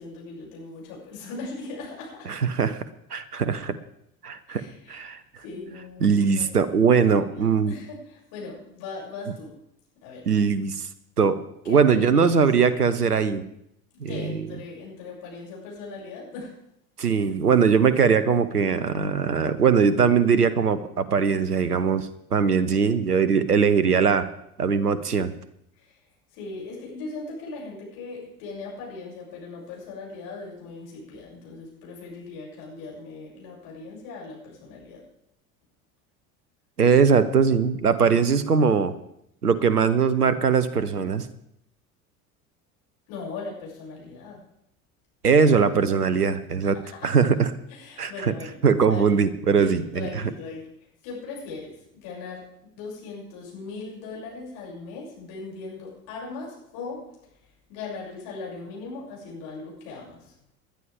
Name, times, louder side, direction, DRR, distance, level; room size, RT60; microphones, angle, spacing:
voice 1, 0.0-2.3 4.5-5.0 5.4-9.5 10.0-10.3 11.6-12.3 14.1-16.5 25.8-26.0 26.3-35.0 43.1-44.4 46.8-47.1 47.7-48.6 48.9-49.1 49.6-50.6 51.0-52.4 52.8-57.0 57.7-60.3, left 3 dB, 55° left, -4 dB, 7.1 m, -39 dB
voice 2, 2.3-2.8 3.1-3.8 4.2-4.6 4.9-5.2 6.0-7.8 10.3-10.9 11.2-11.4 11.7-13.5 14.0-14.4 17.0-24.3 24.6-25.3 36.8-38.9 39.4-41.3 45.2-46.8 47.0-47.5 48.0-48.3 48.6-50.3, right 6 dB, 90° right, 15 dB, 0.8 m, -21 dB
20.0 x 11.5 x 3.6 m, 0.76 s
figure-of-eight pair, 70°, 45 cm